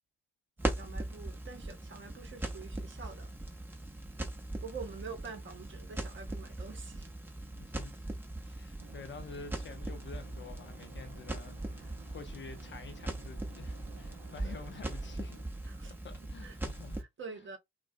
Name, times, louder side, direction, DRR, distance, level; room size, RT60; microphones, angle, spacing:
Crackle, 0.6-17.0, right 2 dB, 5° right, 0.8 m, -40 dB
voice 1, 0.6-3.3 4.6-7.1 14.4-14.5 15.6-15.9 16.2-16.6 17.0-17.6, right 5 dB, 35° right, 0.9 m, -46 dB
voice 2, 7.6-8.0 8.5-15.4 16.0-17.0 17.3-17.4, left 5 dB, 35° left, 0.6 m, -49 dB
sound 1, 8.8-15.5, right 7 dB, 55° right, 0.7 m, -55 dB
2.3 x 2.3 x 2.5 m
figure-of-eight pair, 40°, 34 cm